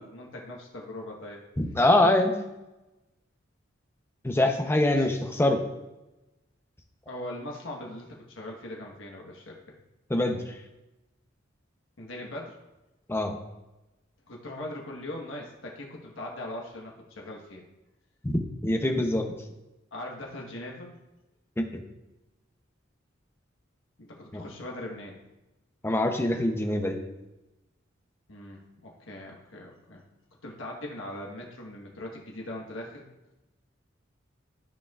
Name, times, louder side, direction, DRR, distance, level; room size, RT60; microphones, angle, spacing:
voice 1, 0.0-1.4 4.9-5.0 7.1-9.6 12.0-12.6 14.3-17.6 19.9-21.0 24.0-25.2 28.3-30.0 30.4-33.1, left 1 dB, 80° left, -1 dB, 1.3 m, -40 dB
voice 2, 1.6-2.3 4.2-5.6 10.1-10.6 13.1-13.4 18.2-19.3 21.6-21.8 24.3-24.4 25.8-27.0, left 1 dB, 10° left, 5 dB, 0.7 m, -24 dB
13.5 x 4.8 x 2.4 m, 1.0 s
head